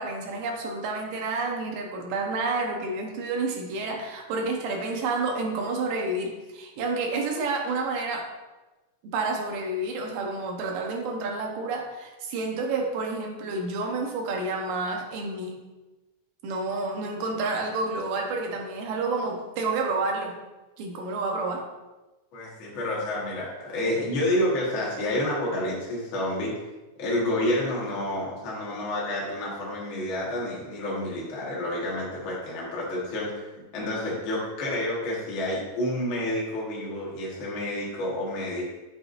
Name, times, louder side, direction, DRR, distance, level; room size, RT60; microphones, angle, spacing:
voice 1, 0.0-8.3 9.0-15.7 16.4-20.4 20.8-21.7, right 3 dB, 70° right, 2 dB, 2.5 m, -29 dB
voice 2, 22.3-26.5 27.0-33.5 33.7-38.6, left 1 dB, 50° left, -5 dB, 1.5 m, -29 dB
8.6 x 6.6 x 2.6 m, 1.1 s
omnidirectional pair, 4.3 m